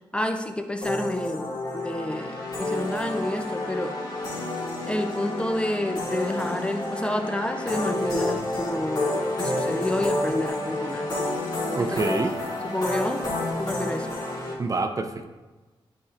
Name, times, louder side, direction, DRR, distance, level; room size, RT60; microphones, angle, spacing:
voice 1, 0.1-4.0 4.9-11.1 11.8-12.2 12.6-13.2 13.6-14.1, left 1 dB, 10° left, 5 dB, 0.5 m, -29 dB
sound 1, 0.8-14.5, left 2 dB, 50° left, 2.3 m, -29 dB
voice 2, 11.7-12.4 14.6-15.3, right 3 dB, 40° right, 7 dB, 0.6 m, -26 dB
11.0 x 4.3 x 2.5 m, 1.2 s
wide cardioid pair, 95°, 9 cm